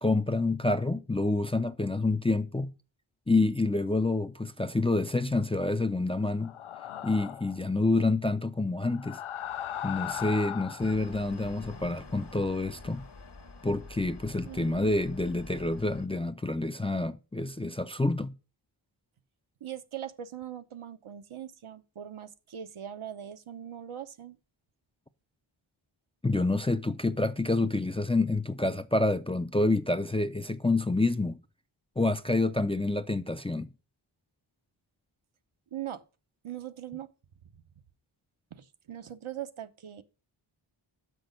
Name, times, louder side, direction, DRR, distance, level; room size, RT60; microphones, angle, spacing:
voice 1, 0.0-2.7 3.3-6.5 7.0-9.2 9.8-13.0 13.6-18.3 26.2-31.4 32.0-33.7, left 2 dB, 10° left, 0.4 m, -28 dB
sound 1, 6.4-7.6 8.9-11.0, left 11 dB, 75° left, 0.5 m, -37 dB
sound 2, 10.8-16.1, left 3 dB, 55° left, 1.2 m, -47 dB
voice 2, 14.4-15.0 19.6-24.4 35.7-36.0 36.4-37.1 37.5-37.6 38.5-40.0, right 10 dB, 75° right, 0.8 m, -41 dB
6.1 x 6.1 x 6.4 m
wide cardioid pair, 65°, 50 cm